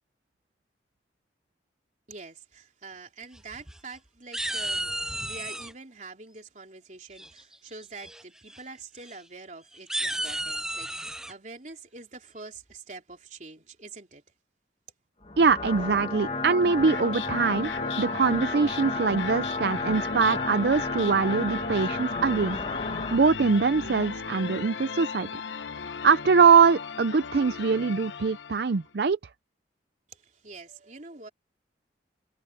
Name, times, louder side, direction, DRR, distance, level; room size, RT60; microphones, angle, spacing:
voice 1, 2.1-14.2 30.1-31.3, right 3 dB, 40° right, 3.8 m, -45 dB
sound 1, 3.4-4.0 4.3-5.7 7.2-7.6 8.0-8.2 8.5-8.6 9.0-9.1 9.7-11.3, right 1 dB, 5° right, 0.3 m, -33 dB
sound 2, 15.2-23.2, left 3 dB, 35° left, 1.4 m, -32 dB
voice 2, 15.4-17.7 18.0-22.6 22.9-25.3 26.0-29.2, right 5 dB, 65° right, 0.5 m, -23 dB
sound 3, 16.6-28.8, left 5 dB, 85° left, 0.9 m, -36 dB
head